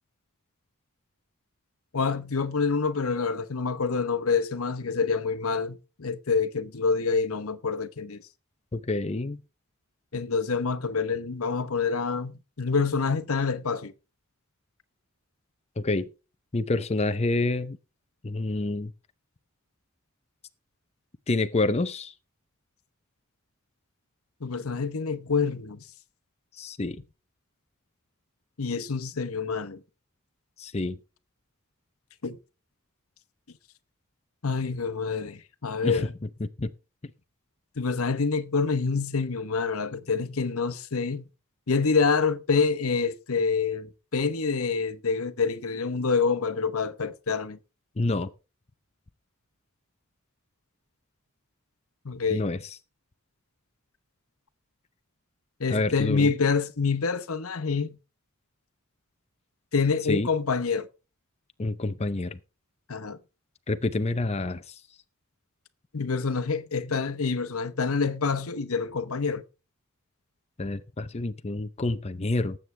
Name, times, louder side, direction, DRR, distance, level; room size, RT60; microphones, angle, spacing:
voice 1, 1.9-8.2 10.1-13.9 24.4-25.8 28.6-29.8 32.2-32.4 34.4-36.1 37.8-41.2 41.7-47.6 52.0-52.4 55.6-58.0 59.7-60.9 62.9-63.2 65.9-69.4, left 5 dB, 75° left, 1.0 m, -27 dB
voice 2, 8.7-9.4 15.8-16.1 16.5-17.8 18.2-18.9 21.3-22.1 26.6-27.0 30.6-31.0 35.8-36.1 36.4-36.7 48.0-48.3 52.3-52.6 55.7-56.3 60.1-60.3 61.6-62.4 63.7-64.7 70.6-72.6, left 2 dB, 30° left, 0.6 m, -28 dB
19.5 x 7.9 x 3.3 m
head